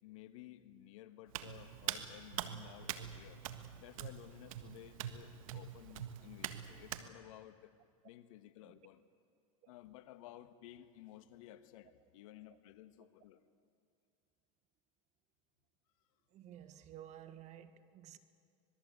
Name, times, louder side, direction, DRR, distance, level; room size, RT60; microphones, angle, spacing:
voice 1, 0.0-3.4 3.8-7.7 8.0-9.0 9.7-13.4, left 13 dB, 70° left, 11 dB, 1.5 m, -55 dB
Hands, 1.3-7.0, right 11 dB, 75° right, 1.6 m, -44 dB
voice 2, 16.3-18.2, right 11 dB, 40° right, 12 dB, 1.6 m, -53 dB
26.0 x 21.0 x 8.2 m, 2.4 s
supercardioid pair, 120°, 17 cm